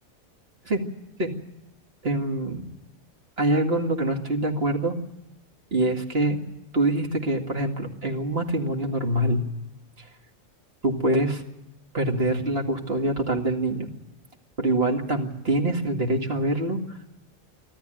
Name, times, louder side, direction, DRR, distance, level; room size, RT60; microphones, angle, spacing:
voice 1, 2.0-2.7 3.4-5.0 5.7-6.4 6.7-9.5 10.8-11.4 11.9-13.9 14.6-17.1, right 1 dB, 50° right, 3 dB, 2.4 m, -25 dB
25.0 x 14.0 x 9.0 m, 0.94 s
omnidirectional pair, 1.4 m